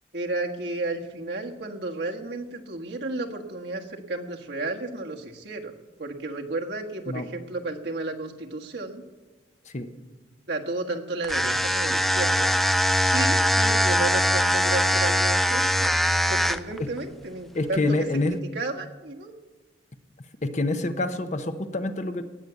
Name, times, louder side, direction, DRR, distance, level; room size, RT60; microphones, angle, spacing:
voice 1, 0.1-9.0 10.5-12.6 13.1-16.0 16.2-19.3, right 2 dB, 70° right, 1 dB, 1.5 m, -33 dB
sound 1, 11.2-16.8, equal, ahead, 0.4 m, -22 dB
voice 2, 17.5-18.4 20.4-22.2, left 2 dB, 40° left, 8 dB, 0.9 m, -27 dB
18.5 x 6.9 x 8.3 m, 1.2 s
head